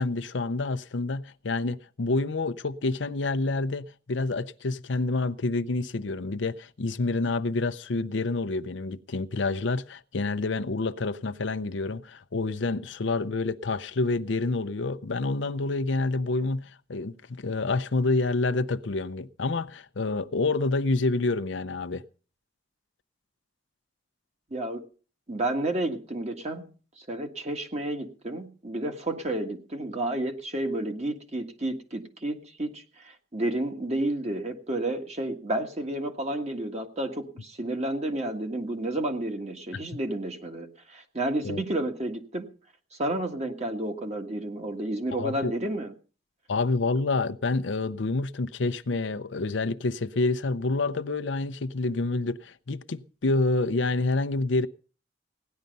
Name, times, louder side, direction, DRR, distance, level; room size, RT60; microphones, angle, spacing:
voice 1, 0.0-22.0 39.7-39.8 41.4-41.6 45.1-45.5 46.5-54.7, left 3 dB, 75° left, 0.7 m, -28 dB
voice 2, 24.5-24.8 25.3-26.7 27.0-42.5 42.9-45.9, right 1 dB, 35° right, 1.8 m, -31 dB
17.0 x 10.5 x 5.4 m
head